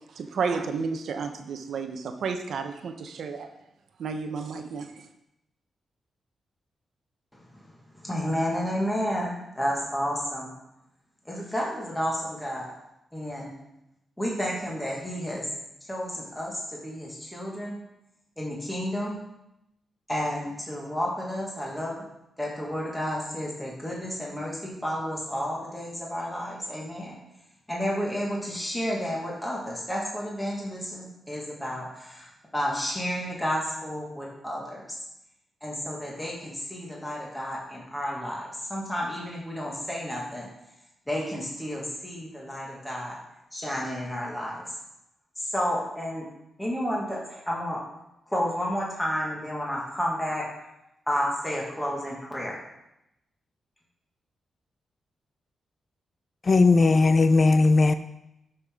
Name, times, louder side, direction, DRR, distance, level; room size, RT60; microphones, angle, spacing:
voice 1, 0.2-3.5 4.0-4.9, right 5 dB, 70° right, 7 dB, 0.9 m, -31 dB
voice 2, 8.0-10.5 11.3-12.7 13.1-13.5 14.2-15.5 15.9-17.8 18.4-19.2 20.1-22.0 22.4-27.2 27.7-35.0 35.6-40.5 41.1-43.2 43.5-44.6 45.4-46.3 46.6-47.8 48.3-50.4 51.1-52.6, equal, 5° left, -4 dB, 1.8 m, -31 dB
voice 3, 56.4-57.9, left 3 dB, 30° left, 10 dB, 0.3 m, -18 dB
12.5 x 5.6 x 3.7 m, 0.86 s
wide cardioid pair, 145°, 0 cm